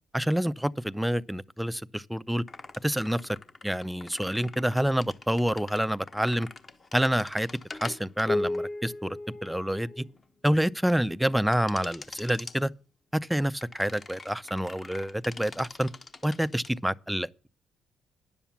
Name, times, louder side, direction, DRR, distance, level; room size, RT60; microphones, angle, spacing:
voice 1, 0.1-2.4 2.8-3.4 3.6-6.5 6.9-7.5 7.8-10.0 10.4-12.7 13.1-15.9 16.2-17.3, equal, 5° right, 0.4 m, -27 dB
sound 1, 2.5-10.2 11.5-12.6 13.6-16.7, left 2 dB, 30° left, 1.0 m, -39 dB
10.0 x 7.1 x 7.1 m
cardioid pair, 90°, 0 cm